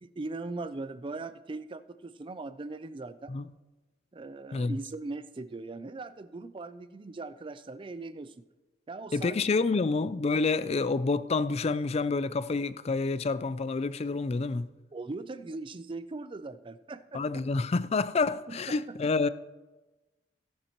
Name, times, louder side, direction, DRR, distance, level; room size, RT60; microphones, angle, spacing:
voice 1, 0.0-3.3 4.1-8.4 8.9-9.4 14.9-17.4 18.5-18.8, right 3 dB, 30° right, 0.4 m, -40 dB
voice 2, 9.1-14.7 17.1-19.3, left 3 dB, 35° left, 0.4 m, -28 dB
16.0 x 10.5 x 3.0 m
head